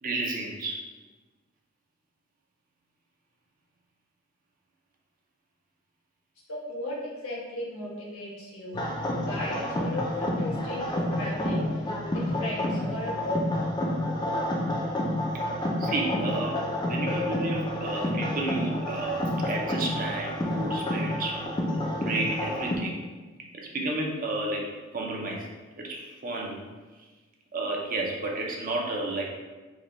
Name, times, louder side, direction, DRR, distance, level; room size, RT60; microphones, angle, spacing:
voice 1, 0.0-0.8 15.8-16.6 16.9-21.4 21.7-23.0 23.5-24.7 24.9-25.5 25.8-26.7 27.5-29.3, right 2 dB, 40° right, -1 dB, 0.5 m, -31 dB
voice 2, 6.5-8.8 9.2-13.4, left 1 dB, 80° left, -4 dB, 1.1 m, -36 dB
sound 1, 8.7-22.8, left 1 dB, 20° left, 0.4 m, -29 dB
4.8 x 2.1 x 3.1 m, 1.3 s
head